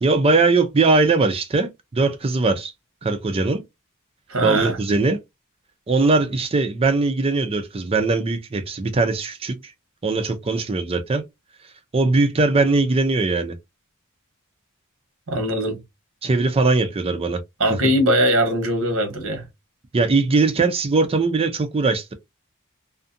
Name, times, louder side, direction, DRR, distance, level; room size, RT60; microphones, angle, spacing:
voice 1, 0.0-2.7 3.0-3.6 4.4-5.2 5.9-9.6 10.0-11.2 11.9-13.5 16.2-17.4 19.9-22.1, right 3 dB, 25° right, 0.4 m, -20 dB
voice 2, 4.3-4.8 15.3-15.8 17.6-19.4, equal, 65° right, 1.0 m, -21 dB
2.5 x 2.4 x 2.5 m
head